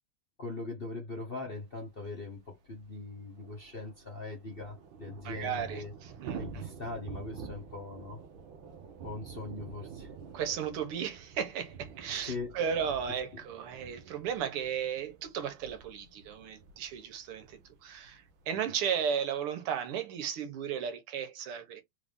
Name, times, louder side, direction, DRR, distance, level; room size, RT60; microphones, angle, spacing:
voice 1, 0.4-5.9 6.4-8.2 9.0-10.1 12.2-12.6 13.1-13.4, left 3 dB, 40° left, 0.8 m, -41 dB
Thunder / Rain, 2.0-2.1 2.3-2.4 2.7-18.6, right 6 dB, 70° right, 1.6 m, -48 dB
voice 2, 5.3-6.4 10.3-21.8, right 8 dB, 90° right, 1.9 m, -35 dB
4.5 x 2.7 x 3.4 m
omnidirectional pair, 2.4 m